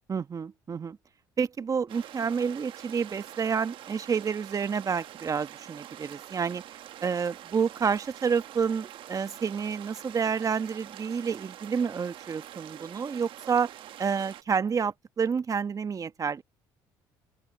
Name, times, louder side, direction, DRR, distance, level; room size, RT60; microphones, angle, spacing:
voice 1, 0.1-1.0 1.4-6.6 7.0-13.7 14.0-16.4, right 6 dB, 35° right, 1.2 m, -29 dB
sound 1, 1.9-14.4, right 12 dB, 60° right, 1.3 m, -46 dB
open air
supercardioid pair, 70°, 10 cm